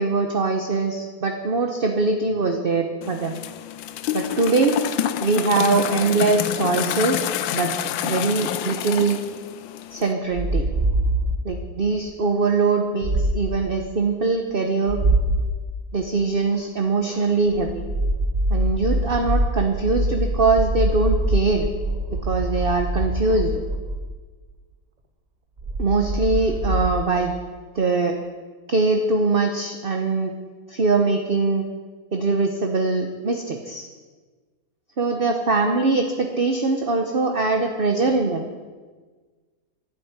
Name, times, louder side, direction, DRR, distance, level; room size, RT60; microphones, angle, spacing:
voice 1, 0.0-3.4 4.1-4.8 5.2-7.3 7.5-7.7 8.0-9.2 9.9-10.6 11.4-15.0 15.9-17.8 18.5-21.7 22.2-23.5 25.8-27.3 27.7-28.1 28.7-30.3 30.7-31.6 32.1-33.9 35.0-38.5, right 3 dB, 35° right, 3 dB, 0.9 m, -22 dB
sound 1, 3.0-10.1, left 11 dB, 75° left, 1.4 m, -28 dB
sound 2, 10.3-11.6 13.0-13.6 14.9-15.6 17.5-24.2 25.6-26.9, right 1 dB, 60° right, 0.4 m, -24 dB
11.5 x 8.7 x 9.6 m, 1.4 s
omnidirectional pair, 2.1 m